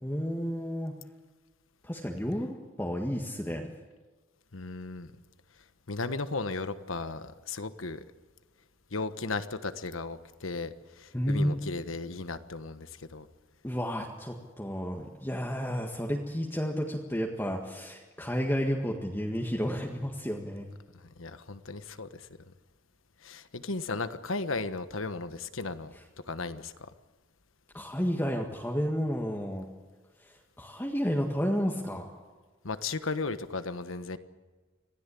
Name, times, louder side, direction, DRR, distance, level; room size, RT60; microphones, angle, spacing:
voice 1, 0.0-1.0 1.8-3.7 11.1-11.6 13.6-20.7 27.7-29.7 30.2-32.1, equal, 10° left, 0 dB, 1.8 m, -31 dB
voice 2, 4.5-5.1 5.9-8.0 8.9-13.3 21.0-22.2 23.2-25.9 26.3-26.9 32.6-34.2, left 3 dB, 85° left, 11 dB, 1.3 m, -35 dB
26.0 x 17.0 x 8.5 m, 1.3 s
head